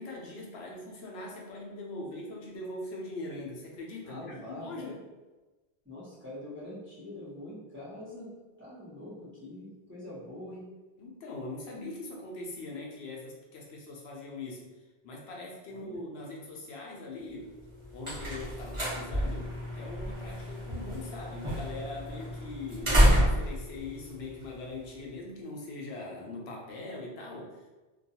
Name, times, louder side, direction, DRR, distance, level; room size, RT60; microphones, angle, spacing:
voice 1, 0.0-5.0 11.0-14.7 15.0-17.5 17.9-27.6, left 2 dB, 75° left, -2 dB, 0.8 m, -41 dB
voice 2, 4.0-4.9 5.8-10.7 15.7-16.0, left 1 dB, 15° right, -11 dB, 0.8 m, -44 dB
sound 1, 17.5-25.0, equal, 30° right, 1.0 m, -29 dB
2.3 x 2.3 x 2.7 m, 1.2 s
omnidirectional pair, 1.1 m